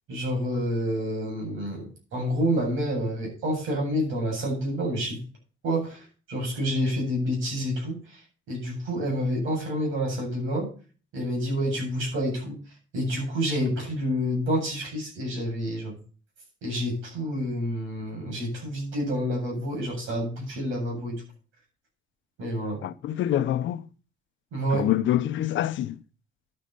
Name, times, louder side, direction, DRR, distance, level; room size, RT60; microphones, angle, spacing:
voice 1, 0.1-5.2 5.6-8.0 8.5-10.7 11.1-12.5 12.9-15.9 16.6-21.2 22.4-22.8 24.5-24.9, equal, 85° right, 7.8 m, -28 dB
voice 2, 22.8-23.9 24.7-26.0, left 12 dB, 75° left, 0.7 m, -26 dB
11.5 x 7.5 x 5.4 m
cardioid pair, 90°, 20 cm